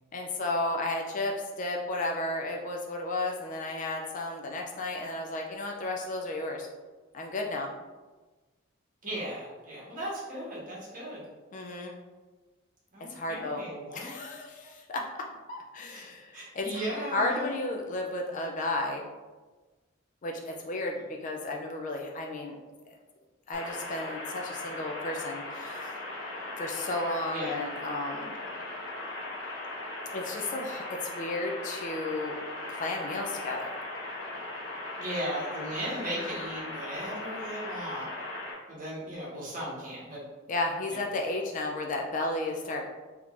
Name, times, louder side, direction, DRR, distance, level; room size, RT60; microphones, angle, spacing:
voice 1, 0.1-6.7 7.1-7.7 11.5-12.0 13.1-13.6 13.9-15.0 15.5-19.0 20.2-22.6 23.5-25.9 26.6-28.3 30.1-32.4 32.7-33.8 40.5-42.8, left 2 dB, 40° left, 1 dB, 0.3 m, -33 dB
voice 2, 9.0-11.2 12.9-14.1 15.9-16.1 16.3-17.5 20.9-21.0 27.3-27.6 35.0-38.1 38.7-40.2 40.9-41.0, right 1 dB, 45° right, -6 dB, 1.2 m, -37 dB
sound 1, 23.5-38.5, left 2 dB, 65° left, 0.8 m, -38 dB
3.5 x 2.9 x 2.4 m, 1.3 s
head